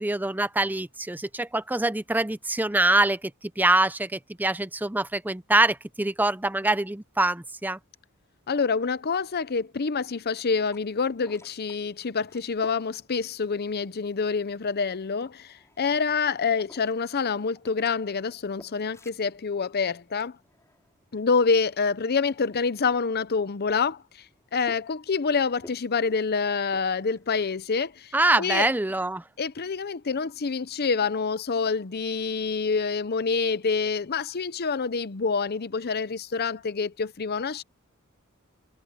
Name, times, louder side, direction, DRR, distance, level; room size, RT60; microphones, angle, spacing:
voice 1, 0.0-3.3 3.6-7.8 28.1-29.2, right 2 dB, 10° right, 0.6 m, -24 dB
voice 2, 8.5-20.4 21.1-24.0 24.5-28.7 29.4-37.6, left 5 dB, 45° left, 0.7 m, -27 dB
sound 1, 10.2-28.0, left 1 dB, 15° left, 4.2 m, -56 dB
head